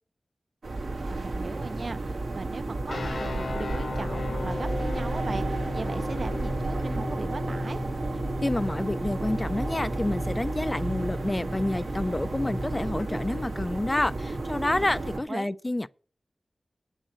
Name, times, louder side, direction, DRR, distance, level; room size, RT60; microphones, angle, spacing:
sound 1, 0.6-15.2, right 2 dB, 90° right, 1.8 m, -32 dB
voice 1, 1.0-7.8 15.1-15.6, right 3 dB, 60° right, 0.7 m, -39 dB
sound 2, 2.9-13.1, left 2 dB, 75° left, 1.4 m, -36 dB
voice 2, 8.4-15.9, left 1 dB, 25° left, 0.4 m, -28 dB
9.0 x 6.3 x 7.5 m
wide cardioid pair, 80°, 0 cm